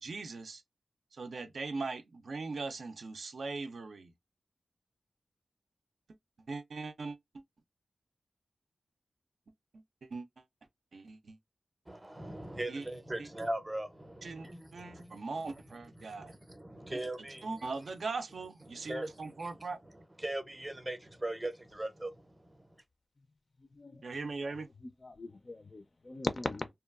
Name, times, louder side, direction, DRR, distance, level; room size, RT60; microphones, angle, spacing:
voice 1, 0.0-0.6 1.2-4.1 6.5-7.2 10.0-10.3 10.9-11.4 12.7-12.8 13.2-13.3 14.2-16.3 16.9-17.0 17.4-19.8 24.0-24.7, right 3 dB, 70° right, 0.4 m, -40 dB
voice 2, 11.9-17.7 18.7-22.8, right 1 dB, 15° right, 0.6 m, -41 dB
voice 3, 23.7-24.0 24.4-24.5 25.0-26.7, left 2 dB, 40° left, 0.4 m, -38 dB
2.8 x 2.3 x 2.3 m
wide cardioid pair, 105°, 0 cm